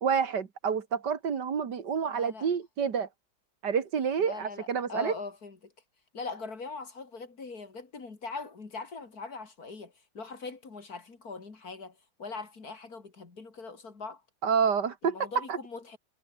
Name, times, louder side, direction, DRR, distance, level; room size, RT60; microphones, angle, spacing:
voice 1, 0.0-3.1 3.6-5.1 14.4-15.6, right 6 dB, 75° right, 2.4 m, -28 dB
voice 2, 2.1-2.5 4.2-5.7 6.1-14.2 15.0-16.0, left 4 dB, 55° left, 3.4 m, -41 dB
omnidirectional pair, 1.9 m